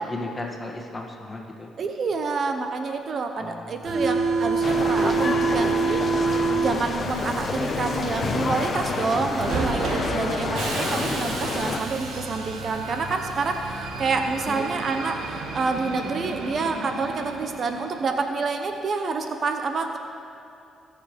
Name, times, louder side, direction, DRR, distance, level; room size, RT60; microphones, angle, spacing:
voice 1, 0.0-1.7 3.4-4.0 5.0-5.5 14.5-14.7, left 2 dB, 20° left, 0 dB, 1.8 m, -36 dB
voice 2, 1.8-6.3 6.6-20.0, right 4 dB, 50° right, 6 dB, 0.9 m, -28 dB
Subway metro underground, 3.8-18.2, right 4 dB, 75° right, 1.5 m, -29 dB
sound 1, 4.6-11.8, left 4 dB, 40° left, 0.8 m, -28 dB
20.0 x 6.7 x 5.2 m, 2.7 s
cardioid pair, 90°, 0 cm